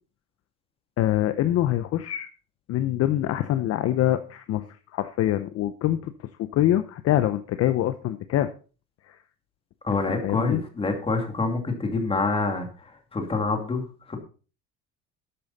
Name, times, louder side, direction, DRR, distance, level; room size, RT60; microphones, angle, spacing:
voice 1, 1.0-2.3 2.7-4.6 4.9-6.1 6.4-8.5 9.1-9.2 9.9-10.6, left 13 dB, 50° left, 11 dB, 0.8 m, -24 dB
voice 2, 9.8-14.2, left 3 dB, 15° left, 4 dB, 2.5 m, -27 dB
12.5 x 8.7 x 4.1 m, 0.37 s
cardioid pair, 150°, 32 cm